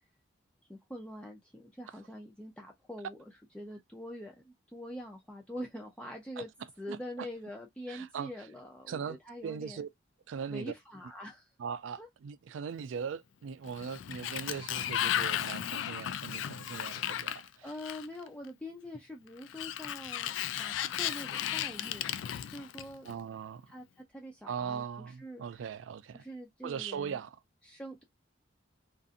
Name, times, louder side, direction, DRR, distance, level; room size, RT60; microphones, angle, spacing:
voice 1, 0.7-3.2 3.5-6.5 6.8-9.9 10.5-11.5 12.0-12.1 17.6-22.1 22.5-23.1 23.7-25.4 26.1-27.2 27.6-28.0, equal, 5° left, 0.5 m, -44 dB
voice 2, 6.9-7.3 7.9-8.3 8.9-9.2 9.4-9.9 10.3-10.7 11.6-17.7 23.0-23.7 24.5-26.2 26.6-27.4, right 7 dB, 80° right, 0.3 m, -39 dB
Sliding door, 13.6-18.3 19.4-23.1, left 10 dB, 75° left, 0.3 m, -35 dB
2.6 x 2.5 x 2.4 m
head